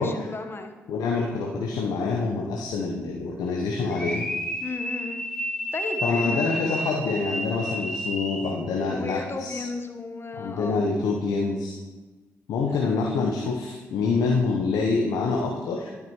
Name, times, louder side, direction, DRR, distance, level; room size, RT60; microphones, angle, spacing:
voice 1, 0.0-0.7 4.6-5.2 5.7-6.5 8.9-10.8 12.6-12.9, left 3 dB, 35° left, 6 dB, 1.1 m, -35 dB
voice 2, 0.9-4.2 6.0-9.6 10.4-11.7 12.5-15.9, left 4 dB, 75° left, -1 dB, 0.8 m, -26 dB
sound 1, 3.9-8.6, equal, 10° left, 1.7 m, -31 dB
12.0 x 5.9 x 3.0 m, 1.3 s
hypercardioid pair, 40°, 7 cm